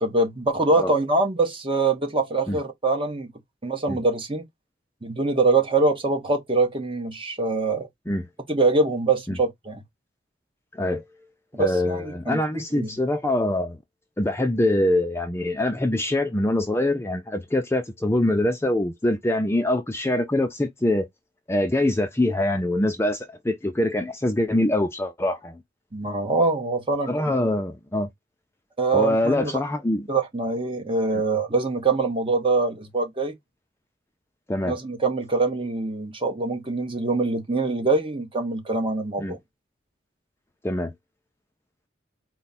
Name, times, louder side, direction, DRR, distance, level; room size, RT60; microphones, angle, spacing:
voice 1, 0.0-3.3 3.6-4.4 5.0-7.9 8.5-9.8 11.5-12.9 25.9-27.1 28.8-29.5 30.1-33.3 34.7-39.4, right 3 dB, 25° right, 1.2 m, -24 dB
voice 2, 10.7-11.0 11.6-13.8 14.2-21.1 21.5-25.6 27.1-28.1 28.9-30.1 31.1-31.2 34.5-34.8 39.2-39.4 40.6-40.9, left 1 dB, 15° left, 0.5 m, -24 dB
4.5 x 2.2 x 4.1 m
head